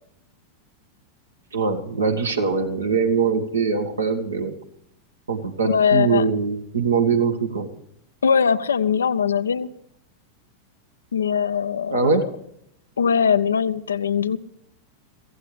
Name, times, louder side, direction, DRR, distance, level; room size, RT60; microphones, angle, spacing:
voice 1, 1.5-4.5 5.3-7.7 11.9-12.2, right 5 dB, 75° right, 4 dB, 1.7 m, -22 dB
voice 2, 5.6-6.2 8.2-9.7 11.1-12.0 13.0-14.4, left 7 dB, 70° left, 13 dB, 0.6 m, -21 dB
24.0 x 15.5 x 3.3 m, 0.75 s
figure-of-eight pair, 90°, 0 cm